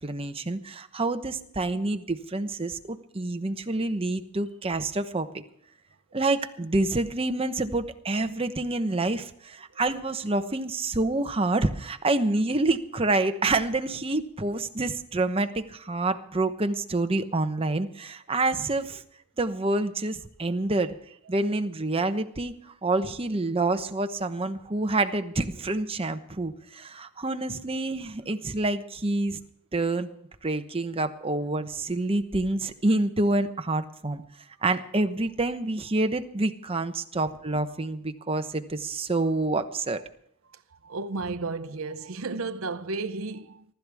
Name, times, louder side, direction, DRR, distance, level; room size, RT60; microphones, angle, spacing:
voice 1, 0.0-5.4 6.1-19.0 19.4-20.9 21.3-29.4 29.7-30.1 30.4-34.2 34.6-40.0, right 2 dB, 25° right, 1.0 m, -27 dB
voice 2, 40.8-43.6, right 3 dB, 65° right, 0.7 m, -33 dB
24.0 x 12.5 x 3.6 m
head